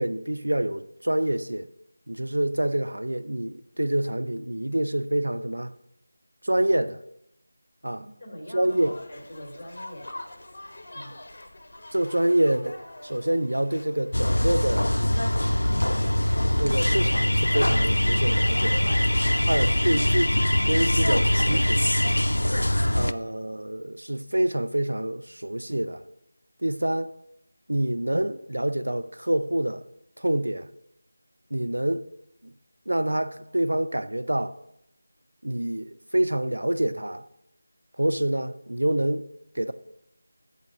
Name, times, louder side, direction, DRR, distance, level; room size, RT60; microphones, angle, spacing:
voice 1, 0.0-1.7 2.1-5.7 6.4-7.0 7.8-8.0 8.5-8.9 11.9-12.8 13.0-15.3 16.6-19.0 19.5-21.9 22.9-26.0 26.6-27.1 27.7-29.8 30.2-30.7 31.5-32.0 32.4-32.5 32.9-34.5 35.4-37.2 38.0-39.2 39.6-39.7, right 1 dB, 75° right, 0.5 m, -26 dB
voice 2, 8.0-10.1 10.9-11.2, equal, 20° left, 2.2 m, -43 dB
sound 1, 8.7-20.7, left 1 dB, 45° left, 0.9 m, -46 dB
sound 2, 14.1-23.1, left 1 dB, 75° left, 0.3 m, -22 dB
8.8 x 4.1 x 6.1 m
figure-of-eight pair, 165°, 0 cm